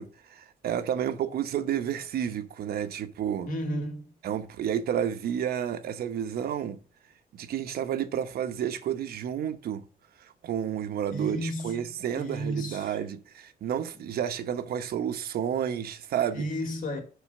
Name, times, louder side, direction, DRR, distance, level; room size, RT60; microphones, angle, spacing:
voice 1, 0.0-3.5 4.2-6.8 7.3-9.8 10.2-16.5, right 9 dB, 80° right, 1.0 m, -31 dB
voice 2, 3.4-4.1 11.1-11.9 12.1-13.0 16.3-17.0, equal, 60° left, 2.5 m, -33 dB
7.0 x 5.6 x 7.5 m
wide cardioid pair, 165°, 16 cm